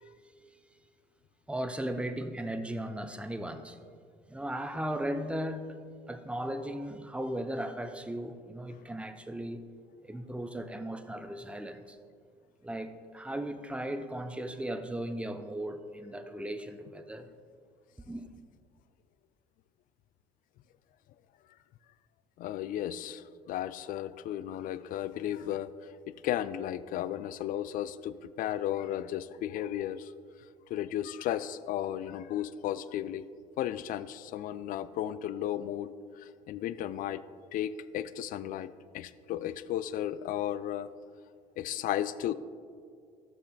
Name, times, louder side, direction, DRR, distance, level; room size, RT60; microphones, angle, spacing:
voice 1, 1.5-3.8 4.3-5.8 6.1-9.6 10.0-12.0 12.6-17.3 18.1-18.3, right 1 dB, 5° right, 0.6 m, -37 dB
voice 2, 22.4-25.7 26.1-30.1 30.7-33.3 33.6-37.2 37.5-40.9 41.6-42.3, left 11 dB, 45° left, 0.4 m, -34 dB
14.5 x 6.7 x 2.2 m
hypercardioid pair, 60°, 19 cm